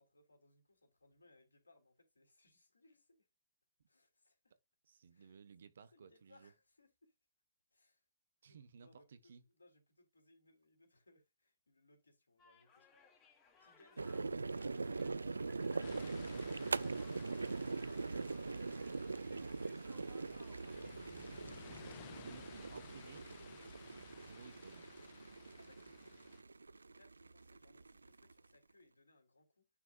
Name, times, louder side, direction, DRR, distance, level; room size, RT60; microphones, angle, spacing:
voice 1, 0.0-3.3 3.9-4.4 5.1-5.4 5.9-7.1 7.7-8.0 8.4-13.0 13.6-16.1 20.2-22.2 25.4-29.7, left 2 dB, 85° left, 3.1 m, -69 dB
voice 2, 4.9-6.5 8.4-9.4 19.1-19.5 19.9-20.3 22.1-23.3 24.2-24.9, right 6 dB, 70° right, 1.1 m, -58 dB
sound 1, 12.4-21.0, left 5 dB, 25° left, 3.3 m, -66 dB
sound 2, 14.0-28.5, right 3 dB, 85° right, 0.3 m, -42 dB
sound 3, 15.8-26.4, left 17 dB, 40° left, 0.5 m, -59 dB
10.0 x 4.8 x 2.4 m
figure-of-eight pair, 120°, 0 cm